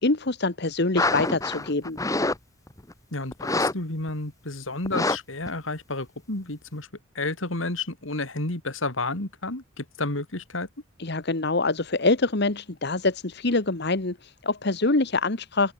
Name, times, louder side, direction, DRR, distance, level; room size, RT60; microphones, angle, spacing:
voice 1, 0.0-2.0 11.0-15.7, left 3 dB, 55° left, 1.5 m, -25 dB
sound 1, 1.0-2.4 2.7-2.9 3.3-3.7 4.1-4.2 4.8-5.2 5.5-5.6, left 2 dB, 15° left, 1.3 m, -25 dB
voice 2, 3.1-6.9 7.1-10.7, left 2 dB, 75° left, 3.1 m, -31 dB
open air
head